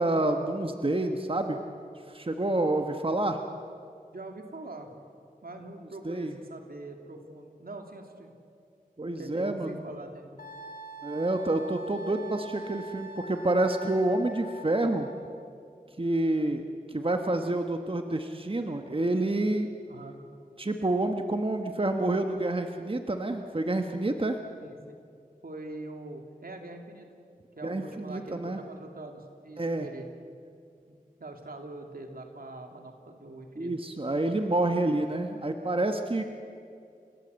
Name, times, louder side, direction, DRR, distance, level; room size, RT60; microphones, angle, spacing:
voice 1, 0.0-1.6 2.1-3.4 6.0-6.4 9.0-9.8 11.0-15.1 16.0-16.6 16.9-19.7 20.6-24.4 27.6-28.6 29.6-29.9 33.6-36.2, right 2 dB, 35° right, 5 dB, 1.4 m, -28 dB
voice 2, 4.1-4.9 5.4-8.3 9.2-10.5 19.9-20.2 24.6-24.9 25.4-27.1 27.5-30.1 30.9-33.7, right 2 dB, 75° right, 3 dB, 2.8 m, -43 dB
Wind instrument woodwind instrument, 10.4-15.2, right 1 dB, 70° left, 2.2 m, -44 dB
30.0 x 17.5 x 8.1 m, 2.4 s
wide cardioid pair, 55°, 15 cm